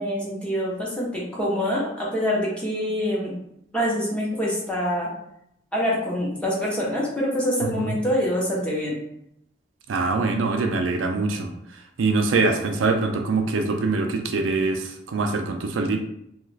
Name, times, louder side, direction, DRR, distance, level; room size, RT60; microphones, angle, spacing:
voice 1, 0.0-3.3 3.7-5.1 5.7-9.0, equal, 5° left, -5 dB, 0.8 m, -25 dB
voice 2, 9.9-11.5 12.0-16.0, right 3 dB, 75° right, 5 dB, 0.4 m, -23 dB
3.0 x 2.3 x 3.2 m, 0.76 s
head